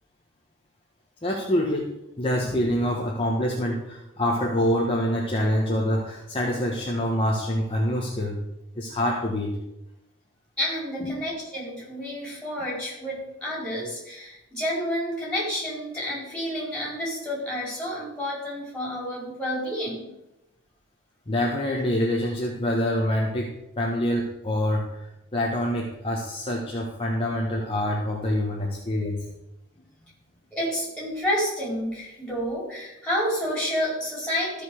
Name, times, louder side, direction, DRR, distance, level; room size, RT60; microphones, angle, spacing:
voice 1, 1.2-1.9 2.2-8.4 8.7-9.6 11.0-11.1 21.3-29.2, left 1 dB, 25° left, -2 dB, 1.3 m, -26 dB
voice 2, 10.6-20.1 30.5-34.6, equal, 5° left, -5 dB, 4.6 m, -29 dB
14.0 x 5.3 x 6.4 m, 0.91 s
head